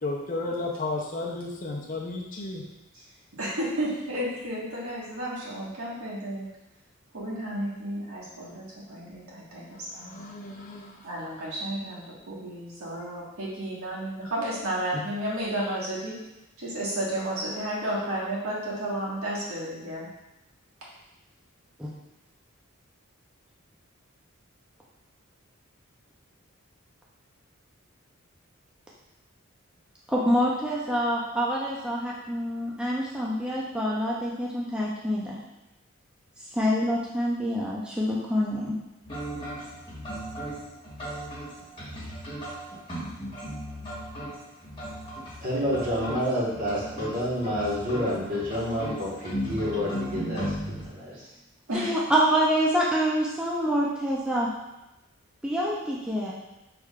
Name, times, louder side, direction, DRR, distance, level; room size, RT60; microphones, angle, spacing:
voice 1, 0.0-2.6 9.6-11.1, left 2 dB, 40° left, 0 dB, 0.6 m, -33 dB
voice 2, 3.3-6.5 7.1-10.1 11.0-16.2 16.6-20.1 51.7-51.9, right 1 dB, 90° right, -6 dB, 1.6 m, -32 dB
voice 3, 30.1-35.4 36.5-38.7 51.7-54.5 55.4-56.3, equal, 5° right, -5 dB, 0.5 m, -26 dB
sound 1, 39.0-50.9, equal, 25° left, 1.3 m, -36 dB
voice 4, 45.4-51.3, equal, 40° right, -6 dB, 1.4 m, -29 dB
6.1 x 3.4 x 2.4 m, 0.96 s
head